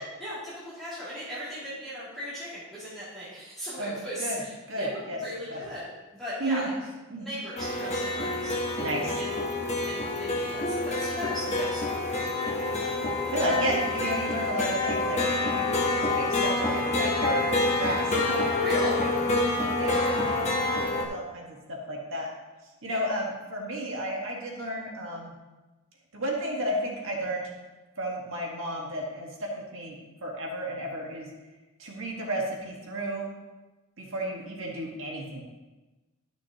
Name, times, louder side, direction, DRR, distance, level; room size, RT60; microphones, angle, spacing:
voice 1, 0.0-6.8 7.2-8.5 9.2-9.5 9.8-12.0 12.4-12.9 18.5-19.0 19.9-20.2 22.9-23.0, equal, ahead, -12 dB, 2.5 m, -38 dB
voice 2, 4.7-5.2 5.5-5.6 6.4-6.7 7.1-7.3 8.8-9.2 13.3-17.5 17.7-18.5 19.0-22.3 22.8-25.3 26.1-27.5 28.0-30.0 30.2-31.3 31.8-33.3 34.0-35.4, equal, 65° right, -1 dB, 1.5 m, -32 dB
sound 1, 7.6-21.1, left 2 dB, 30° left, 1.0 m, -27 dB
11.5 x 6.2 x 2.9 m, 1.1 s
head